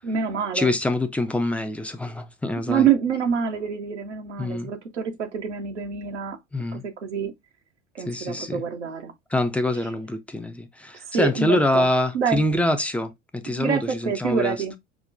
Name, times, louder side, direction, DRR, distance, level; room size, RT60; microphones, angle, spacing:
voice 1, 0.0-0.7 2.7-6.4 6.7-7.3 7.9-9.1 11.1-11.8 12.1-12.4 13.6-14.7, right 7 dB, 80° right, 0.7 m, -26 dB
voice 2, 0.5-2.9 4.4-4.7 6.5-6.8 8.0-8.6 9.3-14.6, left 1 dB, 5° left, 0.4 m, -25 dB
5.8 x 2.1 x 2.5 m
figure-of-eight pair, 70°, 35 cm